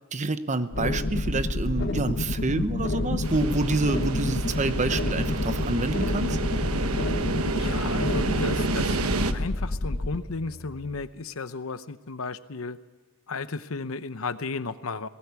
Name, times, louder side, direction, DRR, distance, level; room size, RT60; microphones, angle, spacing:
voice 1, 0.1-6.4, right 2 dB, 35° right, 11 dB, 0.9 m, -28 dB
sound 1, 0.7-10.2, left 2 dB, 55° left, 1.1 m, -29 dB
voice 2, 2.6-3.2 7.6-9.0 9.3-12.8 13.3-15.1, left 3 dB, 75° left, 13 dB, 0.9 m, -34 dB
sound 2, 3.2-9.3, right 3 dB, 90° right, 1.1 m, -30 dB
sound 3, 5.2-10.9, equal, ahead, 4.2 m, -46 dB
19.0 x 18.0 x 8.3 m, 1.3 s
head